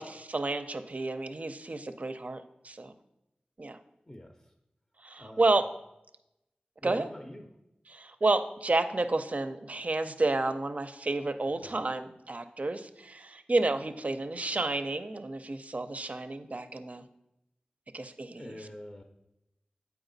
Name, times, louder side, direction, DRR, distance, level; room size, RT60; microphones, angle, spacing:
voice 1, 0.0-2.9 3.6-3.8 5.0-5.6 6.8-7.1 7.9-17.0 17.9-18.6, right 2 dB, 50° right, 9 dB, 0.5 m, -31 dB
voice 2, 4.1-4.5 5.2-5.6 6.8-7.5 11.6-11.8 18.4-19.0, left 1 dB, 20° left, 3 dB, 0.6 m, -44 dB
7.9 x 4.6 x 3.9 m, 0.87 s
cardioid pair, 45°, 3 cm